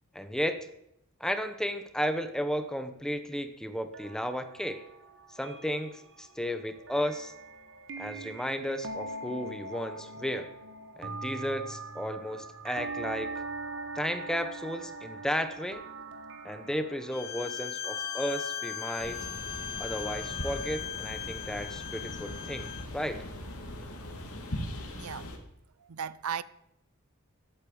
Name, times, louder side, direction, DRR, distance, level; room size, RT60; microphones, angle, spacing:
voice 1, 0.1-0.6 1.2-4.8 5.3-7.3 8.0-10.5 11.0-13.3 13.9-15.8 16.4-19.2 19.8-23.2, equal, 5° left, 1.1 m, -34 dB
sound 1, 3.9-20.6, right 3 dB, 60° right, 1.7 m, -42 dB
Bowed string instrument, 17.1-22.9, left 11 dB, 45° left, 1.4 m, -38 dB
sound 2, 19.0-25.4, left 1 dB, 85° left, 2.7 m, -40 dB
voice 2, 25.0-25.3 25.9-26.4, right 8 dB, 80° right, 0.6 m, -35 dB
13.5 x 8.7 x 8.9 m
head